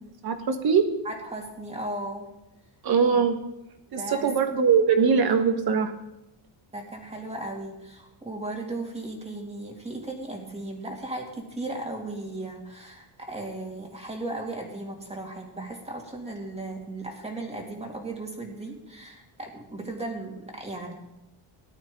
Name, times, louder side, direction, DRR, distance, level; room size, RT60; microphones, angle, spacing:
voice 1, 0.2-0.9 2.8-3.4 3.9-5.9, right 6 dB, 50° right, 7 dB, 1.5 m, -22 dB
voice 2, 1.0-2.3 3.1-3.2 4.0-4.4 6.7-20.9, right 2 dB, 15° right, 1 dB, 2.4 m, -36 dB
18.0 x 12.0 x 3.8 m, 0.91 s
cardioid pair, 155°, 48 cm